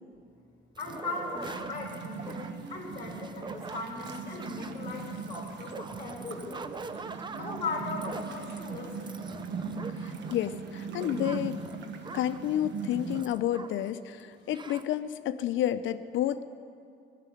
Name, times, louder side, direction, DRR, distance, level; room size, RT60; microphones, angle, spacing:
sound 1, 0.7-13.9 14.2-14.3 14.5-14.9, right 4 dB, 25° right, 0.5 m, -44 dB
voice 1, 0.8-6.6 7.3-9.1, left 3 dB, 25° left, -1 dB, 3.0 m, -38 dB
sound 2, 0.9-13.2, right 5 dB, 70° right, 1.2 m, -40 dB
voice 2, 10.0-11.6 12.1-16.4, left 11 dB, 80° left, 11 dB, 0.6 m, -30 dB
16.5 x 6.8 x 9.9 m, 2.4 s
cardioid pair, 130°, 20 cm